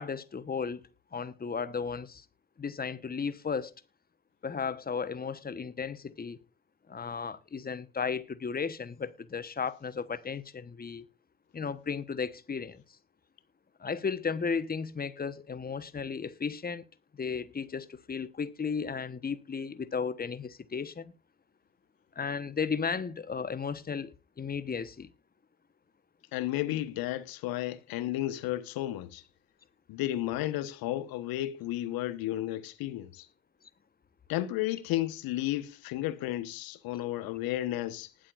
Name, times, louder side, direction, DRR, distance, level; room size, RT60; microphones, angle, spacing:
voice 1, 0.0-2.2 2.6-3.7 4.4-6.4 6.9-11.1 11.5-12.8 13.8-16.8 17.1-21.1 22.1-25.1, left 5 dB, 25° left, 1.2 m, -34 dB
voice 2, 26.3-29.2 29.9-33.3 34.3-38.1, left 14 dB, 60° left, 1.3 m, -33 dB
19.5 x 7.6 x 2.5 m
hypercardioid pair, 55°, 40 cm